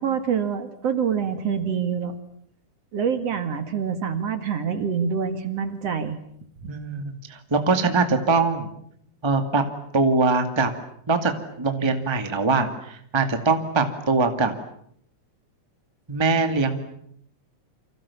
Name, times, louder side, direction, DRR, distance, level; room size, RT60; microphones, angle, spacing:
voice 1, 0.0-2.1 2.9-6.2, right 7 dB, 55° right, 9 dB, 2.9 m, -26 dB
voice 2, 6.7-8.7 9.2-9.6 9.9-10.7 11.1-11.3 11.6-14.5 16.1-16.8, right 4 dB, 10° right, 7 dB, 1.8 m, -22 dB
29.5 x 26.0 x 7.2 m, 0.68 s
omnidirectional pair, 3.5 m